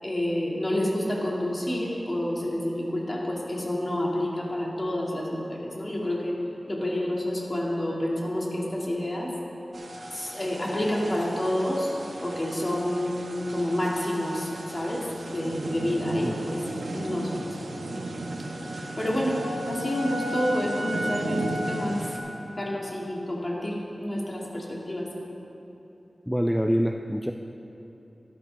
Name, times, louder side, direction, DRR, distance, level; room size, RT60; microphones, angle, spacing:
voice 1, 0.0-6.3 6.7-9.3 10.1-11.9 12.2-16.6 16.9-17.5 19.0-22.0 22.6-25.1, left 1 dB, 30° left, -3 dB, 2.0 m, -29 dB
sound 1, 9.7-22.2, right 1 dB, 80° right, 1.0 m, -34 dB
voice 2, 26.3-27.3, equal, ahead, 4 dB, 0.3 m, -25 dB
12.5 x 12.0 x 3.3 m, 3.0 s
wide cardioid pair, 100°, 0 cm